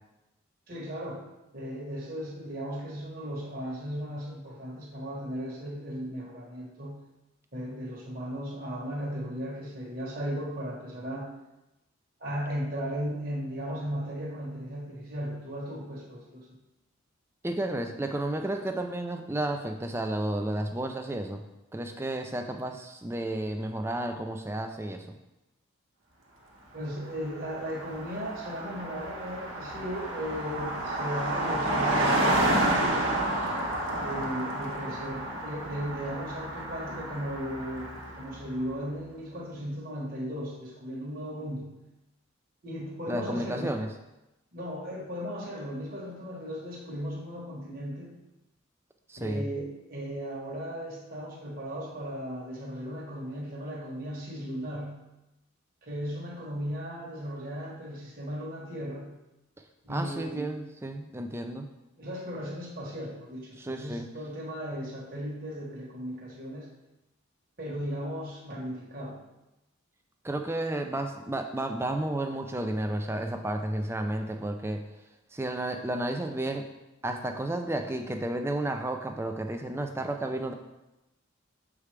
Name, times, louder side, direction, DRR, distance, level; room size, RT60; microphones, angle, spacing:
voice 1, 0.7-1.2 1.5-7.0 7.5-11.3 12.2-16.5 26.7-33.3 34.0-41.7 42.6-43.8 44.5-48.1 49.2-55.0 55.8-59.1 59.8-60.5 62.0-66.7 67.6-69.2, equal, 45° right, -4 dB, 1.3 m, -36 dB
voice 2, 17.4-21.4 21.7-25.2 43.1-43.9 49.1-49.4 59.9-61.7 63.6-64.1 70.2-74.8 75.3-76.7 77.0-80.5, right 1 dB, 10° right, 5 dB, 0.4 m, -32 dB
Car passing by, 27.1-27.2 27.4-38.4, right 1 dB, 70° right, 1.2 m, -30 dB
7.0 x 4.8 x 3.3 m, 0.95 s
head